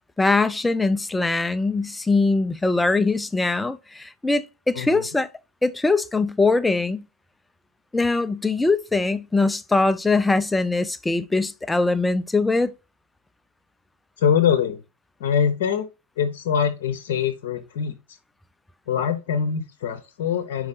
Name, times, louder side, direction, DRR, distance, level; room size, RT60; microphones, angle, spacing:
voice 1, 0.2-5.3 5.6-7.1 7.9-12.7, left 3 dB, 5° left, 0.4 m, -22 dB
voice 2, 4.7-5.1 14.2-14.8 15.2-15.9 16.2-18.2 18.9-20.7, left 7 dB, 55° left, 0.8 m, -23 dB
5.2 x 4.7 x 4.1 m
figure-of-eight pair, 90°, 0 cm